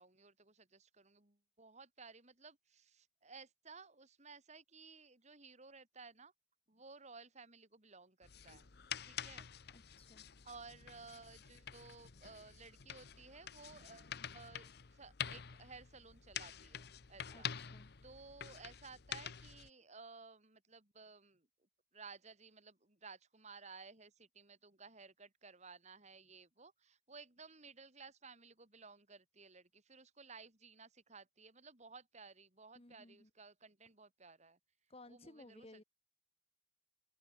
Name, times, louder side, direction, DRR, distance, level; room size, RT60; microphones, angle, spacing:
voice 1, 0.0-6.3 6.7-8.7 9.0-9.5 10.4-17.5 18.0-21.5 21.9-34.6 35.1-35.8, right 4 dB, 40° right, 3.5 m, -57 dB
sound 1, 8.2-19.7, left 9 dB, 60° left, 0.9 m, -48 dB
voice 2, 9.7-10.3 17.3-17.9 32.8-33.3 34.9-35.8, left 2 dB, 30° left, 1.8 m, -58 dB
open air
head